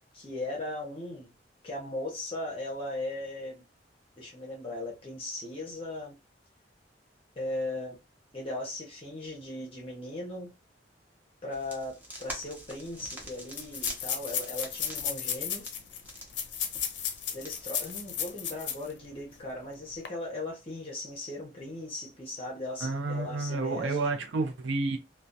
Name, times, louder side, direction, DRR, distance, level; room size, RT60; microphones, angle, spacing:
voice 1, 0.0-1.3 1.6-3.6 4.2-6.2 7.4-8.0 8.3-10.5 11.4-15.6 17.3-24.0, left 2 dB, 30° left, 0.6 m, -38 dB
sound 1, 11.5-18.3, right 1 dB, 10° right, 0.6 m, -46 dB
sound 2, 12.4-12.5 12.7-12.8 13.5-18.9 19.3-19.4 19.9-20.1, left 8 dB, 70° left, 0.5 m, -34 dB
voice 2, 22.8-25.0, right 3 dB, 75° right, 0.5 m, -30 dB
2.2 x 2.1 x 2.6 m
head